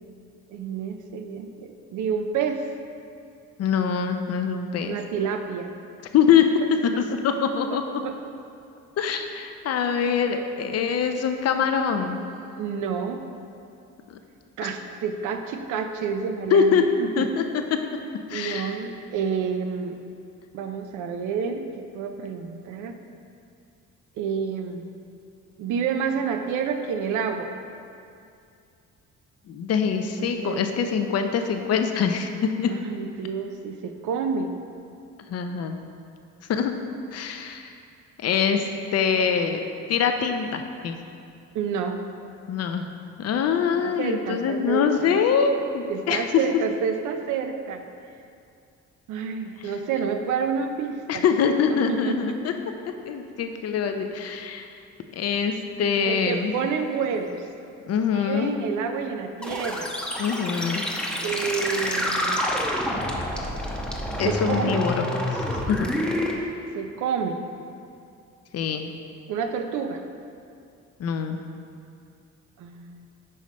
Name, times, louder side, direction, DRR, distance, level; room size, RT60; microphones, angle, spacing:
voice 1, 0.5-2.7 4.9-5.7 6.9-7.0 7.7-8.1 12.6-13.2 14.6-17.2 18.3-20.0 20.5-21.7 21.9-23.0 24.2-24.9 25.6-27.5 30.4-30.7 32.7-34.6 41.5-42.0 43.8-45.1 45.9-47.8 49.1-51.2 51.7-52.4 56.1-57.4 58.1-60.0 61.2-62.5 64.2-64.9 66.7-67.4 69.3-70.0 72.6-73.1, right 6 dB, 80° right, 6 dB, 0.6 m, -29 dB
voice 2, 3.6-5.0 6.1-6.4 7.2-7.8 9.0-12.2 14.1-14.2 14.6-14.7 16.5-16.8 17.2-17.4 17.7-17.8 18.3-18.8 29.5-32.7 35.3-35.8 36.5-36.7 37.1-37.7 38.2-39.6 39.9-41.0 42.5-42.8 43.2-46.2 51.1-52.5 53.1-54.7 55.2-56.6 57.9-58.6 60.2-60.8 64.2-65.0 65.3-65.9 68.5-68.9 71.0-71.4, left 7 dB, 55° left, 6 dB, 0.6 m, -24 dB
sound 1, 59.4-66.3, left 1 dB, 5° left, 0.8 m, -28 dB
5.5 x 4.9 x 4.2 m, 2.4 s
cardioid pair, 90°, 30 cm